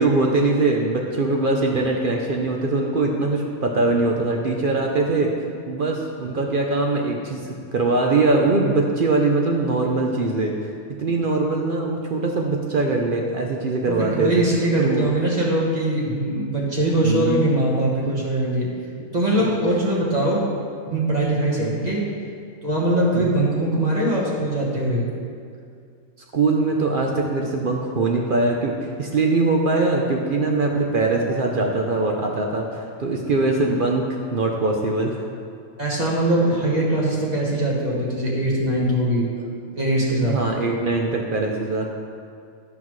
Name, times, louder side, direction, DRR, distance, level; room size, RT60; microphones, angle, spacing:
voice 1, 0.0-5.3 5.7-10.7 11.0-14.5 14.7-15.1 17.0-17.4 19.0-19.1 21.6-21.8 23.1-23.3 26.3-35.2 39.4-39.5 40.2-41.9, right 3 dB, 55° right, 0 dB, 0.6 m, -22 dB
voice 2, 13.8-18.7 19.1-20.5 20.9-22.1 22.6-25.1 35.8-39.3 39.8-40.4, right 1 dB, 30° right, -5 dB, 1.3 m, -21 dB
12.0 x 5.8 x 3.1 m, 2.3 s
omnidirectional pair, 1.5 m